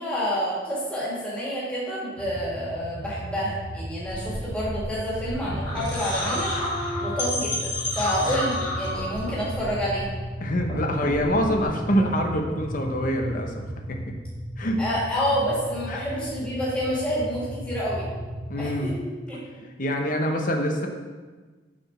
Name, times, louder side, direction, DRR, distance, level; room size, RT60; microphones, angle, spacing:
voice 1, 0.0-6.5 7.0-7.7 8.0-10.1 14.8-18.1 18.6-18.9 19.3-19.4, equal, 5° left, -8 dB, 2.1 m, -28 dB
sound 1, 2.2-18.8, equal, 55° right, 2.2 m, -35 dB
sound 2, 4.1-10.3 10.6-11.6, left 1 dB, 25° left, 2.3 m, -31 dB
voice 2, 8.2-8.5 10.4-13.6 13.9-14.2 14.6-14.8 15.9-16.1 18.5-19.0 19.8-20.9, equal, 45° left, 3 dB, 0.9 m, -25 dB
6.1 x 4.8 x 5.9 m, 1.4 s
head